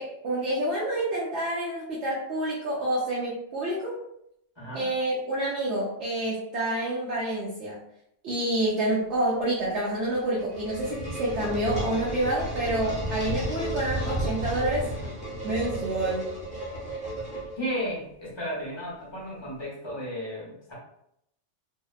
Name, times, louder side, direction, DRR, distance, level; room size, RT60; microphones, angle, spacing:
voice 1, 0.0-4.0 4.7-7.8 8.2-14.9 15.4-16.3, right 1 dB, 65° right, -6 dB, 0.9 m, -28 dB
voice 2, 4.6-4.9 17.6-20.7, equal, 25° left, -6 dB, 0.7 m, -34 dB
sound 1, 10.1-17.9, right 1 dB, 5° right, 0.7 m, -33 dB
2.7 x 2.1 x 2.3 m, 0.76 s
omnidirectional pair, 1.3 m